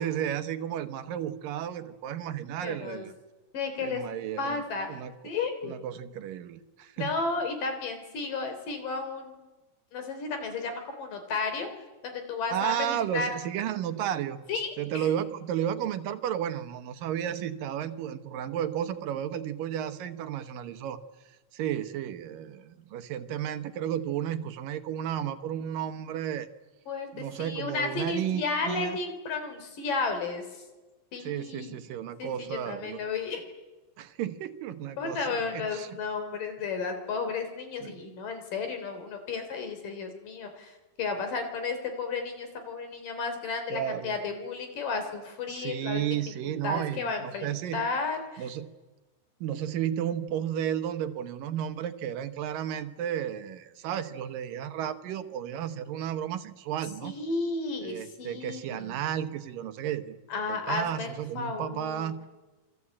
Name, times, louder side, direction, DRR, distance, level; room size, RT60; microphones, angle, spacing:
voice 1, 0.0-3.1 3.8-4.6 4.9-5.1 5.6-7.1 12.5-14.4 14.8-21.0 21.5-26.5 27.1-29.0 31.2-33.0 34.0-36.0 37.8-38.0 43.7-44.2 45.5-47.8 48.4-48.7 49.4-57.1 57.8-60.2 60.5-62.2, right 10 dB, 75° right, 10 dB, 2.8 m, -33 dB
voice 2, 2.6-3.1 3.5-4.0 4.4-4.9 5.2-5.7 7.0-9.5 9.9-11.7 12.0-13.3 14.5-15.1 26.9-30.5 31.1-31.8 32.2-32.3 32.7-33.4 35.0-46.1 46.5-48.4 57.0-58.9 60.3-62.1, left 4 dB, 70° left, 7 dB, 5.2 m, -33 dB
27.5 x 24.5 x 8.6 m, 1.2 s
omnidirectional pair, 4.0 m